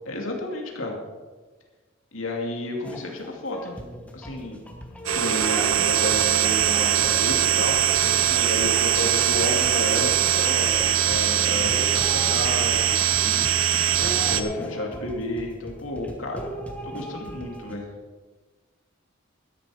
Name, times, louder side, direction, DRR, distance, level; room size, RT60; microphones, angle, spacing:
voice 1, 0.1-1.0 2.1-3.7 4.1-4.6 5.1-7.8 8.4-13.0 13.9-16.5 16.8-17.8, left 1 dB, 80° left, 0 dB, 2.6 m, -31 dB
sound 1, 2.8-17.7, equal, 5° left, 1.3 m, -39 dB
sound 2, 5.1-14.4, right 10 dB, 90° right, 0.7 m, -21 dB
voice 2, 8.0-8.4 11.4-11.8 13.2-13.5, left 1 dB, 40° left, 1 dB, 1.1 m, -39 dB
12.5 x 11.0 x 5.0 m, 1.3 s
head